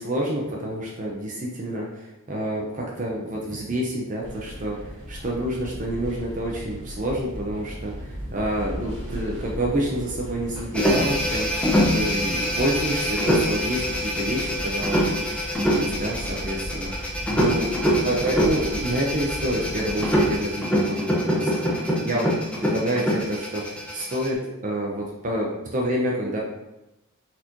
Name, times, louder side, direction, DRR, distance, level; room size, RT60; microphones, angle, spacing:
voice 1, 0.0-17.7 18.0-22.3 22.6-23.6 23.9-24.4 24.6-26.4, right 1 dB, 35° right, -2 dB, 0.6 m, -28 dB
sound 1, 4.2-20.4, equal, 85° right, 1.5 m, -37 dB
sound 2, 10.7-24.3, equal, 5° left, 0.6 m, -24 dB
4.2 x 4.0 x 3.0 m, 0.98 s
head